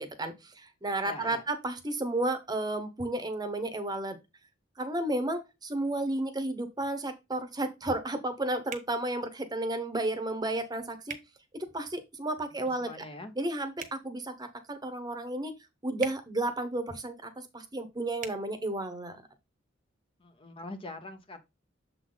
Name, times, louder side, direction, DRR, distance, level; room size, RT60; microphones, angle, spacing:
voice 1, 0.0-4.2 4.8-11.2 11.5-13.0 13.4-15.5 15.8-19.2, right 2 dB, 20° right, 1.0 m, -32 dB
voice 2, 1.0-1.4 12.4-13.3 20.2-21.4, left 2 dB, 30° left, 0.8 m, -44 dB
sound 1, 8.7-8.9 11.1-11.3 13.7-14.0 16.0-16.2 18.2-18.4, right 7 dB, 45° right, 1.1 m, -40 dB
7.1 x 3.9 x 3.9 m
head